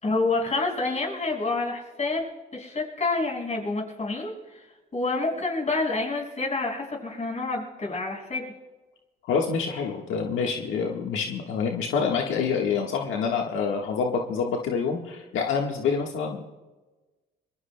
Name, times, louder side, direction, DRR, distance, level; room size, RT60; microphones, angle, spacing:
voice 1, 0.0-2.3 2.5-4.6 4.9-8.4, left 3 dB, 35° left, -1 dB, 5.4 m, -28 dB
voice 2, 9.3-16.4, left 5 dB, 85° left, 0 dB, 1.5 m, -27 dB
26.0 x 22.0 x 2.2 m, 1.2 s
cardioid pair, 90°, 20 cm